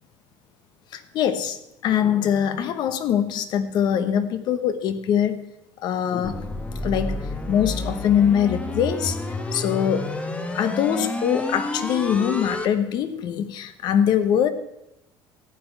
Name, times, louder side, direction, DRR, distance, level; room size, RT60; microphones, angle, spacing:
voice 1, 0.9-5.4 5.8-6.5 6.8-7.2 7.5-9.2 9.5-10.1 10.5-14.5, left 9 dB, 55° left, 12 dB, 1.0 m, -23 dB
sound 1, 6.2-12.7, left 2 dB, 15° left, 1.0 m, -30 dB
14.0 x 9.1 x 4.6 m, 0.85 s
cardioid pair, 140°, 9 cm